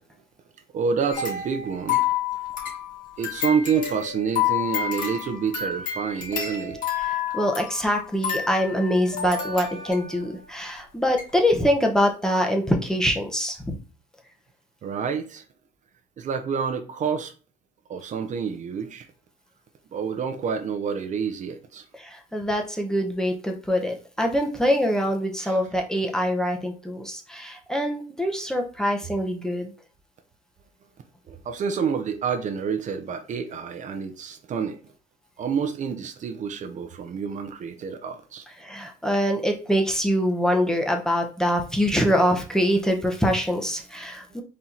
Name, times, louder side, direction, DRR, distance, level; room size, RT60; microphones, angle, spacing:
voice 1, 0.7-2.0 3.2-6.8 14.8-15.4 16.2-17.3 17.9-19.1 19.9-21.8 25.4-25.6 31.3-34.8 35.4-38.4, right 6 dB, 50° right, 0.6 m, -28 dB
sound 1, 1.1-10.3 10.8-10.9 11.2-11.3, left 9 dB, 50° left, 2.4 m, -29 dB
voice 2, 7.0-13.8 21.9-29.7 38.6-44.4, equal, 5° left, 0.9 m, -24 dB
4.3 x 2.8 x 3.8 m
cardioid pair, 110°, 17 cm